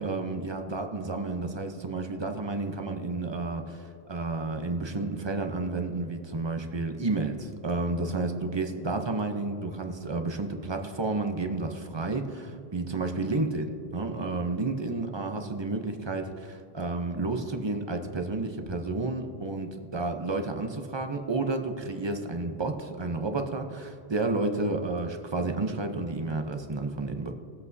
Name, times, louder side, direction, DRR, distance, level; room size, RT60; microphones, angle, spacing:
voice 1, 0.0-27.3, right 3 dB, 30° right, 5 dB, 0.7 m, -31 dB
20.0 x 8.0 x 2.7 m, 2.6 s
omnidirectional pair, 1.1 m